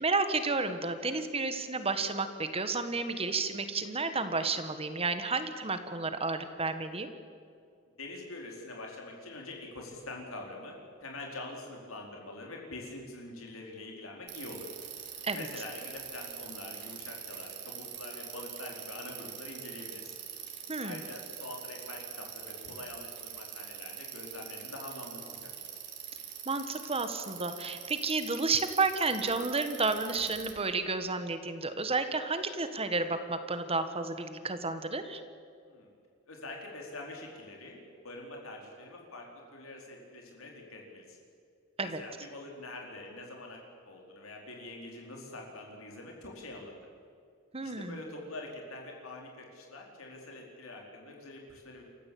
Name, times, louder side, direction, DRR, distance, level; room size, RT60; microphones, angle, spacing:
voice 1, 0.0-7.1 15.2-15.4 20.7-21.0 26.4-35.2 41.8-42.0 47.5-48.0, right 3 dB, 30° right, 9 dB, 1.5 m, -31 dB
voice 2, 8.0-14.7 15.3-20.1 20.8-25.5 35.7-35.9 36.3-41.2 41.8-46.7 47.6-51.8, left 2 dB, 80° left, 0 dB, 4.4 m, -45 dB
Bicycle, 14.3-30.5, right 9 dB, 55° right, 3.6 m, -44 dB
28.0 x 15.0 x 8.6 m, 2.3 s
head